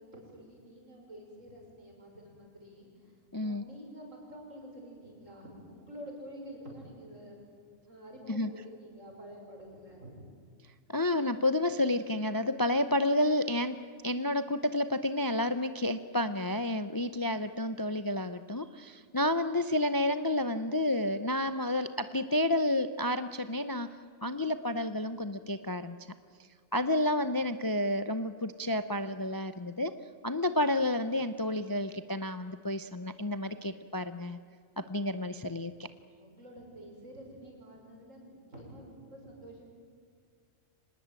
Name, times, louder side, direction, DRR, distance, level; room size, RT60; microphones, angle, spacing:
voice 1, 0.0-3.2 3.4-7.4 7.8-10.1 36.2-39.7, equal, 70° right, 0 dB, 6.3 m, -49 dB
voice 2, 3.3-3.7 8.3-8.5 10.9-13.8 14.0-23.9 24.2-26.0 26.7-29.9 30.2-34.4 34.8-35.9, left 1 dB, 25° left, 11 dB, 0.5 m, -30 dB
25.0 x 19.5 x 9.0 m, 2.2 s
omnidirectional pair, 1.4 m